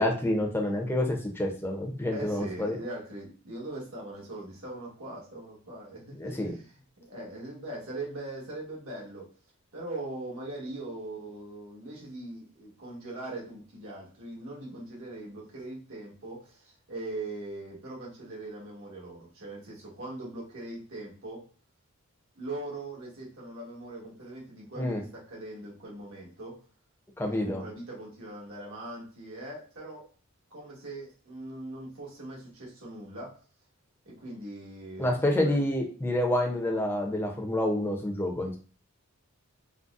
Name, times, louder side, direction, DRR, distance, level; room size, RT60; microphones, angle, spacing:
voice 1, 0.0-2.8 6.2-6.5 24.8-25.0 27.2-27.6 35.0-38.6, left 1 dB, 10° left, 1 dB, 0.5 m, -28 dB
voice 2, 2.1-9.3 9.7-21.4 22.4-26.6 27.2-30.1 30.5-33.4 34.0-35.7, right 2 dB, 75° right, -5 dB, 1.3 m, -41 dB
3.8 x 2.0 x 2.4 m, 0.37 s
head